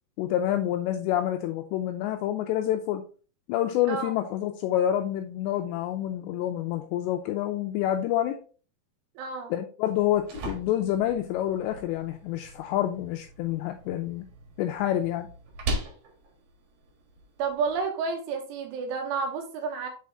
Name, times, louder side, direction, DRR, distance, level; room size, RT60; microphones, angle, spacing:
voice 1, 0.2-3.0 3.5-8.4 9.5-14.3 14.6-15.3, left 12 dB, 85° left, 5 dB, 2.5 m, -28 dB
voice 2, 9.2-9.5 17.4-19.9, right 5 dB, 85° right, 3 dB, 3.7 m, -30 dB
sound 1, 9.9-17.8, right 1 dB, 60° right, 2.6 m, -39 dB
7.5 x 4.2 x 3.5 m, 0.39 s
omnidirectional pair, 5.5 m